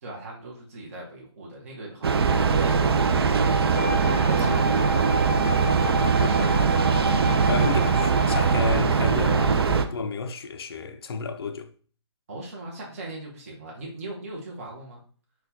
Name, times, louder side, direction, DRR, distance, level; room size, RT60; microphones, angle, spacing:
voice 1, 0.0-2.2 2.6-5.3 5.7-7.1 12.3-15.0, right 2 dB, 30° right, 0.7 m, -39 dB
Train, 2.0-9.8, right 5 dB, 55° right, 0.4 m, -21 dB
Wind instrument woodwind instrument, 3.7-8.8, left 1 dB, ahead, 1.1 m, -31 dB
voice 2, 7.5-11.7, left 4 dB, 55° left, 0.4 m, -31 dB
4.1 x 2.2 x 2.7 m
hypercardioid pair, 165°, 15 cm